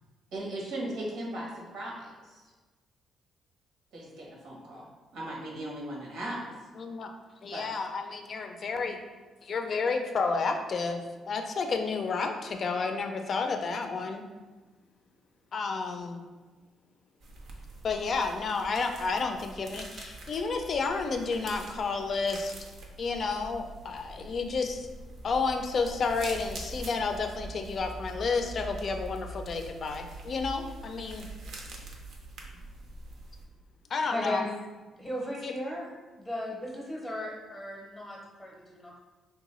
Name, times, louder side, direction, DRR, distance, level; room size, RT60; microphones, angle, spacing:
voice 1, 0.3-2.4 3.9-6.7 7.5-7.7, right 1 dB, 90° right, -3 dB, 0.9 m, -38 dB
voice 2, 6.8-7.1 7.4-9.0 9.4-14.3 15.5-16.2 17.8-22.5 23.0-24.9 25.2-31.3 33.9-34.4 35.4-35.5, left 4 dB, 50° left, 5 dB, 0.4 m, -31 dB
sound 1, 17.2-33.4, right 2 dB, 70° right, 0.5 m, -44 dB
voice 3, 34.1-34.5 35.0-35.9 36.2-39.0, left 1 dB, 5° left, -3 dB, 0.7 m, -36 dB
3.7 x 2.2 x 3.0 m, 1.3 s
cardioid pair, 90°, 0 cm